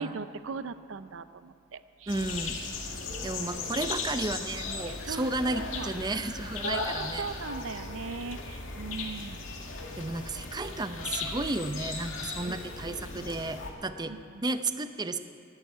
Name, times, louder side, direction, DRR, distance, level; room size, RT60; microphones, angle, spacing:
voice 1, 0.0-2.1 4.9-5.9 6.6-9.4 12.2-12.5 13.1-13.3 14.1-14.4, right 4 dB, 80° right, 13 dB, 0.5 m, -39 dB
sound 1, 2.1-13.7, left 3 dB, 85° left, 2.2 m, -37 dB
voice 2, 2.1-2.6 3.2-7.3 10.0-14.1 14.4-15.2, right 2 dB, 20° right, 9 dB, 0.6 m, -33 dB
Car / Accelerating revving vroom, 4.3-7.6, left 2 dB, 55° left, 2.0 m, -49 dB
13.0 x 11.5 x 9.4 m, 2.4 s
head